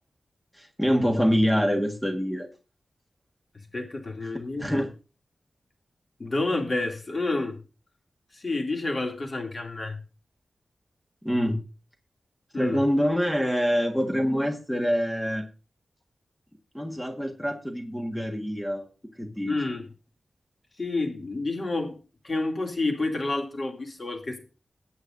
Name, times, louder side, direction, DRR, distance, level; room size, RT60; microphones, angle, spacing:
voice 1, 0.6-2.5 4.6-4.9 11.2-11.6 12.6-15.5 16.7-18.9 19.2-19.5, equal, 5° left, 3 dB, 1.5 m, -25 dB
voice 2, 3.7-4.8 6.2-7.6 8.3-10.0 12.5-12.8 19.5-19.8 20.8-22.0 22.2-24.4, left 2 dB, 45° left, 2 dB, 2.6 m, -29 dB
18.5 x 8.1 x 2.6 m, 0.33 s
wide cardioid pair, 95°, 0 cm